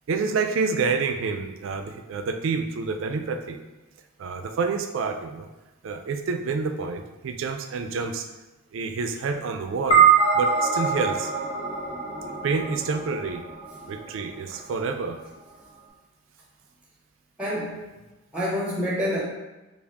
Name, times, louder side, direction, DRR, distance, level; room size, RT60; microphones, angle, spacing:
voice 1, 0.1-3.6 4.2-5.5 5.8-8.3 8.7-10.1 10.3-11.3 12.4-13.4 13.9-15.2, right 4 dB, 60° right, 6 dB, 0.3 m, -28 dB
sound 1, 9.9-14.5, right 6 dB, 30° left, 0.8 m, -23 dB
voice 2, 17.4-17.8 18.3-19.2, equal, 5° right, -5 dB, 0.5 m, -28 dB
3.5 x 2.4 x 3.5 m, 1.1 s
head